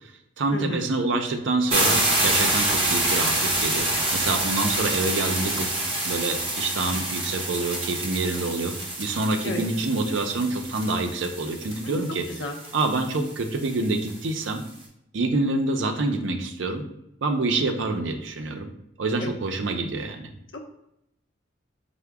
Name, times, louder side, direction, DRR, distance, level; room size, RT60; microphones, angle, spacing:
voice 1, 0.0-5.7 6.0-12.2 12.7-14.6 15.1-16.8 17.2-18.7 19.0-20.3, right 2 dB, 75° right, 5 dB, 0.5 m, -27 dB
voice 2, 0.5-0.8 9.4-9.6 11.8-12.0 12.3-12.6 19.2-19.3 20.5-20.6, left 1 dB, 75° left, 3 dB, 0.6 m, -32 dB
sound 1, 1.7-14.4, right 1 dB, 30° right, 0.9 m, -27 dB
4.7 x 2.1 x 3.4 m, 0.81 s
head